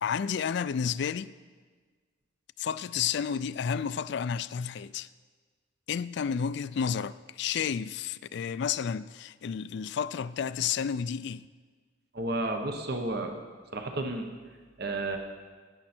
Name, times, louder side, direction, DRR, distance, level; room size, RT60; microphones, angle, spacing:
voice 1, 0.0-1.3 2.6-5.1 5.9-11.5, left 7 dB, 60° left, 0.3 m, -31 dB
voice 2, 12.1-13.4 13.7-14.3 14.8-15.2, right 2 dB, 55° right, 1.1 m, -32 dB
16.0 x 9.8 x 4.4 m
head